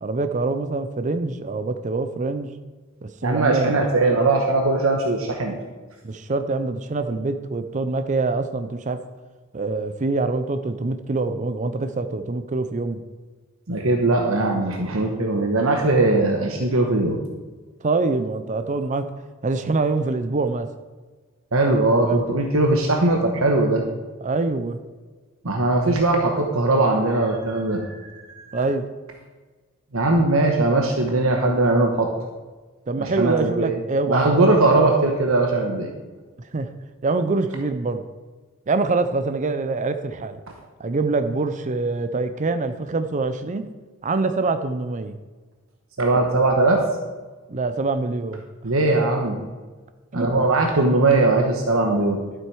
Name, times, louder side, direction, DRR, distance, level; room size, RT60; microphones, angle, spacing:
voice 1, 0.0-2.6 3.0-3.8 6.0-9.0 9.5-13.0 17.8-19.1 19.4-20.7 21.8-22.2 24.2-24.8 28.5-28.9 32.9-34.8 36.5-36.7 37.0-38.0 38.7-40.4 40.8-43.7 44.0-45.2 47.5-48.4 50.1-50.3, right 3 dB, 35° right, 9 dB, 0.5 m, -25 dB
voice 2, 3.2-5.5 13.7-17.2 21.5-23.8 25.4-28.6 29.9-32.1 33.0-33.7 34.1-35.9 46.0-46.8 48.6-49.4 50.1-52.2, right 2 dB, 75° right, 2 dB, 1.2 m, -20 dB
12.0 x 7.7 x 4.7 m, 1.3 s
head